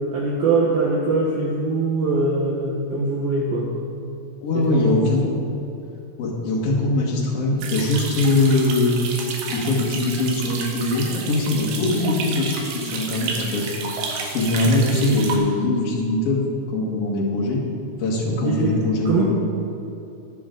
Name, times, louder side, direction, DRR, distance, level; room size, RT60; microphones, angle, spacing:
voice 1, 0.1-3.7 4.5-5.1 14.6-15.0 18.3-18.8 19.1-19.4, right 2 dB, 70° right, -3 dB, 2.3 m, -22 dB
voice 2, 4.4-5.3 6.2-8.9 9.5-13.6 14.3-17.6 18.0-19.3, left 2 dB, 85° left, -3 dB, 1.3 m, -22 dB
sound 1, 7.6-15.4, right 4 dB, 90° right, 4.0 m, -31 dB
20.5 x 7.0 x 3.8 m, 2.7 s
omnidirectional pair, 5.5 m